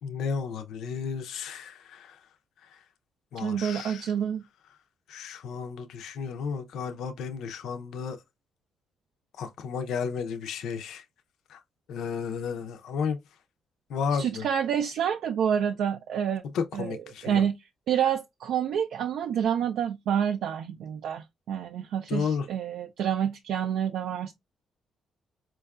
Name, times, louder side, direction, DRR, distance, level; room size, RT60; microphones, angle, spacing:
voice 1, 0.0-2.3 2.6-2.9 3.3-4.1 5.1-8.2 9.3-11.1 11.5-11.6 11.9-13.2 13.9-14.5 16.4-17.5 22.1-22.5, left 6 dB, 80° left, 0.5 m, -33 dB
voice 2, 3.4-4.4 14.2-16.4 16.7-16.9 17.2-17.5 17.9-24.3, right 8 dB, 75° right, 0.3 m, -28 dB
4.4 x 2.3 x 2.3 m
cardioid pair, 90°, 0 cm